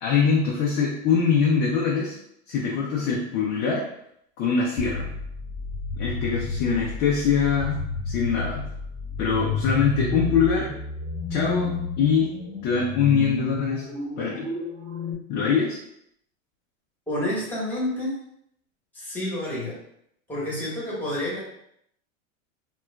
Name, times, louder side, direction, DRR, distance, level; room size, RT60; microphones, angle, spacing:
voice 1, 0.0-2.2 2.5-3.8 4.4-5.1 6.0-7.8 8.1-8.6 9.2-10.7 11.3-12.3 12.6-13.9 14.2-14.5 15.3-15.8, left 6 dB, 30° left, -3 dB, 0.4 m, -23 dB
sound 1, 4.8-15.1, left 3 dB, 30° right, 1.1 m, -31 dB
voice 2, 17.1-18.2 18.9-19.8 20.3-21.4, left 1 dB, 5° left, -6 dB, 1.0 m, -29 dB
2.9 x 2.3 x 3.1 m, 0.73 s
supercardioid pair, 140°, 40 cm